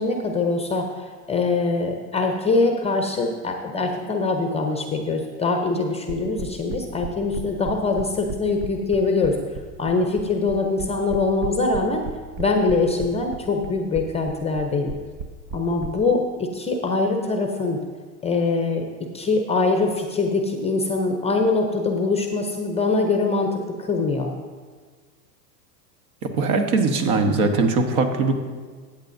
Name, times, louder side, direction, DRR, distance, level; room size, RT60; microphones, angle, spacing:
voice 1, 0.0-9.4 9.8-12.1 12.4-14.9 15.5-17.8 18.2-18.9 19.1-24.3, left 3 dB, 15° left, 4 dB, 0.6 m, -23 dB
sound 1, 6.1-15.9, right 5 dB, 35° right, 0.6 m, -33 dB
voice 2, 26.2-28.3, right 3 dB, 60° right, 6 dB, 1.4 m, -21 dB
14.5 x 8.5 x 2.6 m, 1.5 s
hypercardioid pair, 115°, 49 cm